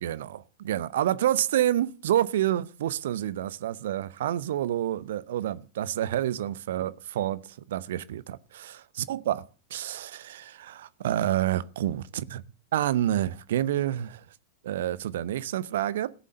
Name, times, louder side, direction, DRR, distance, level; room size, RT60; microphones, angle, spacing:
voice 1, 0.0-7.4 7.7-9.4 9.7-12.4 12.7-14.2 14.6-16.1, right 12 dB, 60° right, 0.7 m, -28 dB
16.5 x 7.4 x 6.7 m
figure-of-eight pair, 90°, 0 cm